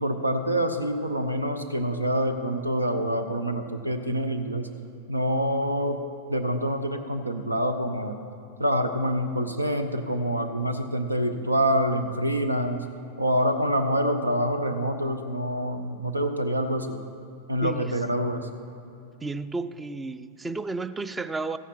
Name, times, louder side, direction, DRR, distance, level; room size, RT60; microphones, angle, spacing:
voice 1, 0.0-4.7 5.1-6.0 6.3-8.2 8.6-12.8 13.2-17.0 17.5-18.5, equal, 85° right, 8 dB, 0.7 m, -26 dB
voice 2, 17.6-17.9 19.2-21.6, right 3 dB, 10° right, 14 dB, 0.4 m, -32 dB
14.0 x 9.9 x 4.4 m, 2.8 s
figure-of-eight pair, 90°, 0 cm